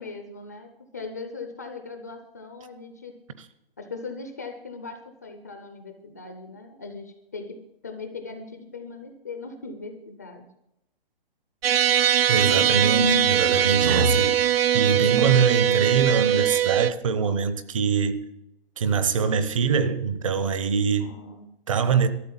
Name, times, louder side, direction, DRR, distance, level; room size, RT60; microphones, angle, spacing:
voice 1, 0.0-3.2 3.8-10.5 21.0-21.5, left 4 dB, 15° left, 0.5 m, -39 dB
sound 1, 11.6-16.9, right 10 dB, 75° right, 0.6 m, -21 dB
voice 2, 12.3-14.4 14.7-18.2 18.8-21.1 21.7-22.1, right 5 dB, 35° right, 0.9 m, -23 dB
13.0 x 7.6 x 9.2 m
hypercardioid pair, 170°, 30 cm